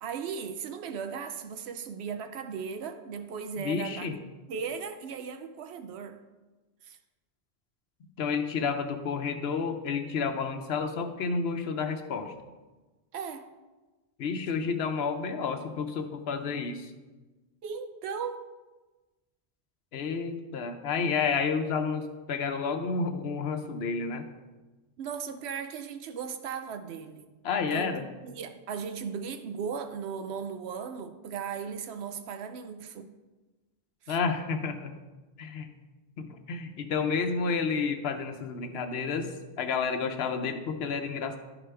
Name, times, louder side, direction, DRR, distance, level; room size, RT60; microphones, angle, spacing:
voice 1, 0.0-4.1 4.5-6.2 6.8-7.0 13.1-13.5 17.6-18.5 25.0-27.3 27.7-33.1 34.0-34.2, right 6 dB, 90° right, 0.9 m, -37 dB
voice 2, 3.6-4.2 8.2-12.3 14.2-16.9 19.9-24.2 27.4-28.0 34.1-34.9 35.4-35.7 36.2-41.4, left 5 dB, 75° left, 0.9 m, -30 dB
12.0 x 5.0 x 3.3 m
omnidirectional pair, 1.1 m